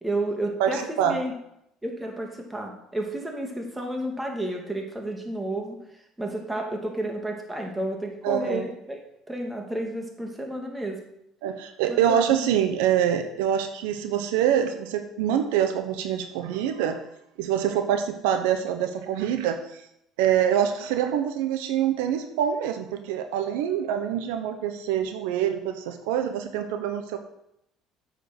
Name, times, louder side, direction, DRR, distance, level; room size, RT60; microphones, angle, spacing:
voice 1, 0.0-1.4 1.8-5.8 6.2-9.0 9.3-11.0 11.9-12.4, right 1 dB, 15° right, 2 dB, 2.5 m, -31 dB
voice 2, 0.6-1.1 8.2-8.7 11.4-17.0 17.4-19.8 20.2-27.2, right 9 dB, 85° right, 7 dB, 1.0 m, -25 dB
8.2 x 7.7 x 6.1 m, 0.79 s
supercardioid pair, 85°, 0 cm